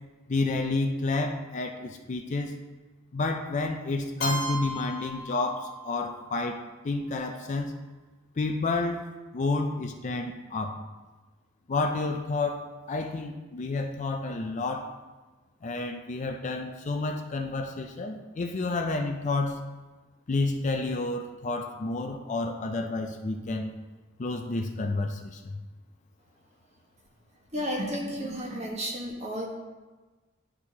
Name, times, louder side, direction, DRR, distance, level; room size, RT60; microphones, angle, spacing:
voice 1, 0.3-2.6 3.1-6.6 6.8-7.7 8.4-9.1 9.3-10.8 11.7-14.9 15.6-19.6 20.3-23.7 24.2-25.6, left 3 dB, 35° left, 4 dB, 0.4 m, -30 dB
Keyboard (musical), 4.2-6.1, right 1 dB, 85° left, 1.7 m, -35 dB
voice 2, 27.5-29.5, equal, 30° right, -2 dB, 1.3 m, -32 dB
11.5 x 4.5 x 2.8 m, 1.3 s
head